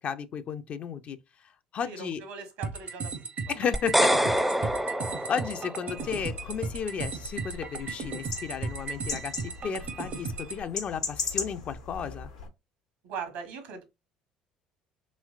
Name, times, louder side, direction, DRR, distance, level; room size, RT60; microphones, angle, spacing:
voice 1, 0.0-2.2 3.5-4.1 5.3-12.3, left 7 dB, 50° left, 0.5 m, -34 dB
voice 2, 1.8-3.2 3.5-3.6 4.6-4.7 5.0-5.1 13.0-13.8, right 5 dB, 70° right, 1.1 m, -40 dB
sound 1, 2.6-10.6, right 4 dB, 50° right, 0.6 m, -36 dB
sound 2, 3.7-6.0, equal, 5° right, 0.4 m, -26 dB
sound 3, 6.0-12.5, left 5 dB, 90° left, 0.9 m, -38 dB
3.2 x 3.0 x 2.4 m
hypercardioid pair, 60°, 3 cm